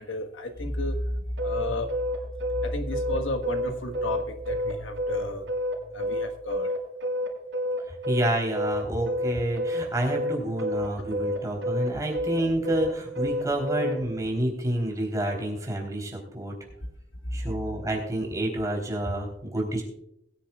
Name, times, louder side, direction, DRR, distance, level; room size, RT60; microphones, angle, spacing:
voice 1, 0.0-1.9 2.5-5.5 5.8-6.7 17.2-17.5, left 1 dB, 90° left, 6 dB, 1.5 m, -32 dB
sound 1, 1.4-14.0, left 1 dB, 75° right, 5.0 m, -29 dB
voice 2, 7.9-16.5 17.3-19.8, right 1 dB, 15° right, 0 dB, 3.6 m, -29 dB
21.5 x 10.0 x 2.4 m, 0.76 s
head